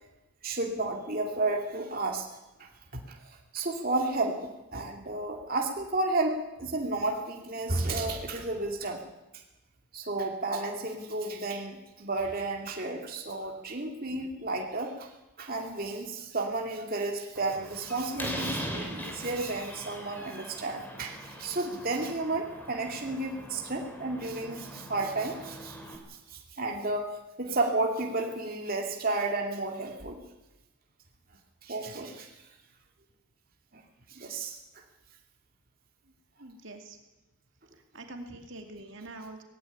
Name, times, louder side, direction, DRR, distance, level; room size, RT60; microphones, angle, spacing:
voice 1, 0.4-2.3 2.6-2.7 3.1-9.0 9.9-15.1 15.4-30.2 31.6-32.3 33.7-33.8 34.1-34.6, right 2 dB, 40° right, 1 dB, 2.4 m, -32 dB
Slam, 17.4-26.0, equal, 10° left, 3.2 m, -41 dB
voice 2, 36.4-37.0 37.7-39.4, right 2 dB, 55° right, 4 dB, 2.5 m, -45 dB
18.5 x 16.5 x 10.0 m, 0.99 s
head